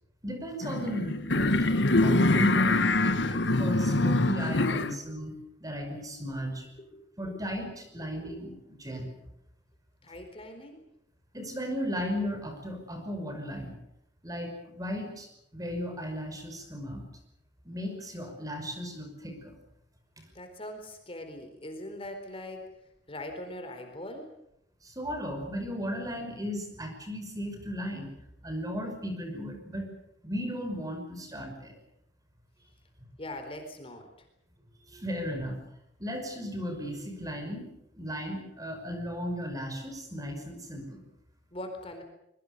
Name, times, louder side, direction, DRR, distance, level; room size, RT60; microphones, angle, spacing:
voice 1, 0.2-5.3 5.6-6.7 7.2-9.1 11.3-13.8 14.2-15.3 15.5-17.0 17.6-19.6 20.2-20.3 24.8-28.1 28.4-29.9 30.2-31.7 34.9-35.6 36.0-37.7 37.9-41.0, equal, 20° right, 5 dB, 5.8 m, -36 dB
sound 1, 0.6-5.0, left 2 dB, 80° left, 1.4 m, -24 dB
voice 2, 10.0-10.8 20.3-22.7 23.1-24.3 33.2-34.1 41.5-42.0, left 1 dB, 35° left, 6 dB, 4.2 m, -41 dB
25.0 x 22.5 x 6.9 m, 0.78 s
head